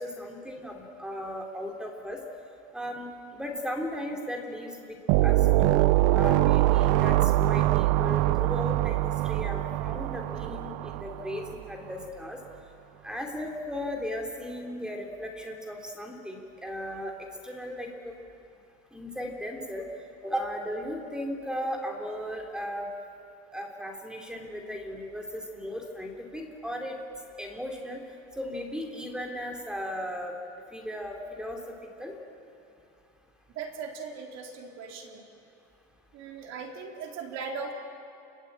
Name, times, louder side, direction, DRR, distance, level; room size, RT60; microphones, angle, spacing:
voice 1, 0.0-2.2 2.7-4.8 5.2-5.8 6.1-9.0 9.2-12.4 13.0-17.1 17.4-18.1 18.9-19.9 20.2-22.9 23.5-27.0 27.4-28.0 28.4-30.4 30.7-31.6 32.0-32.1, equal, ahead, 2 dB, 3.3 m, -36 dB
sound 1, 5.1-11.6, right 16 dB, 70° right, 0.7 m, -24 dB
voice 2, 33.5-35.2 36.1-37.7, right 5 dB, 50° right, 2 dB, 3.9 m, -38 dB
29.0 x 22.0 x 8.9 m, 2.6 s
cardioid pair, 160°, 33 cm